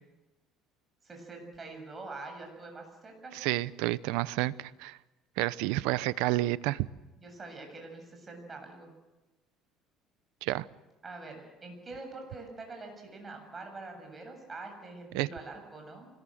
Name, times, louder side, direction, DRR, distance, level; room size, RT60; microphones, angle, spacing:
voice 1, 1.0-3.6 7.2-8.9 11.0-16.1, right 3 dB, 20° right, 4 dB, 7.7 m, -45 dB
voice 2, 3.3-5.0 5.4-6.9 10.4-10.6 15.1-15.3, right 18 dB, 85° right, 17 dB, 0.8 m, -30 dB
25.5 x 20.5 x 7.9 m, 1.1 s
cardioid pair, 130°, 0 cm